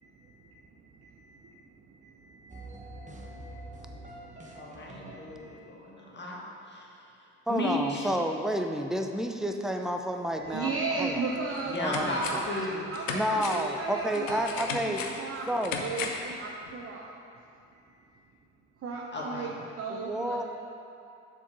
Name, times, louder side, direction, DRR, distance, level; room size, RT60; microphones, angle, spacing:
voice 1, 0.0-5.6 10.4-15.5 15.8-17.2 17.7-18.2 18.8-19.5 19.8-20.4, right 4 dB, 40° right, -2 dB, 0.8 m, -37 dB
sound 1, 2.5-5.8, right 1 dB, 20° right, 1.0 m, -46 dB
voice 2, 4.5-6.9 7.5-8.1 11.7-12.9 19.1-19.5, left 1 dB, 30° left, -3 dB, 1.8 m, -34 dB
voice 3, 7.5-11.2 11.7-12.4 13.1-15.0 15.5-15.8 19.9-20.4, equal, ahead, 4 dB, 0.6 m, -30 dB
sound 2, 10.9-11.0 11.5-12.6 12.9-16.3 16.7-16.8, left 5 dB, 90° left, 0.6 m, -37 dB
7.1 x 4.6 x 5.3 m, 2.7 s
hypercardioid pair, 55°, 37 cm